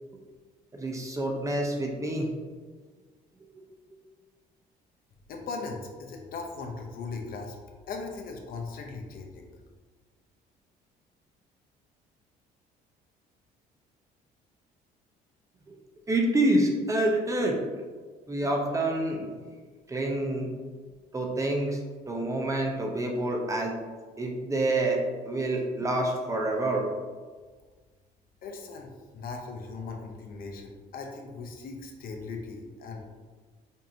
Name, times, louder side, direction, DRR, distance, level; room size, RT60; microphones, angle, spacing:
voice 1, 0.7-2.3 15.7-15.8 16.1-17.6 18.3-19.3 19.9-20.5 21.1-21.8 22.1-23.7 24.2-25.0 25.2-26.9, right 1 dB, 20° right, 0 dB, 0.7 m, -27 dB
voice 2, 5.3-7.6 7.9-9.5 28.4-33.1, left 4 dB, 60° left, 2 dB, 0.7 m, -39 dB
5.3 x 2.7 x 2.7 m, 1.4 s
cardioid pair, 110°, 17 cm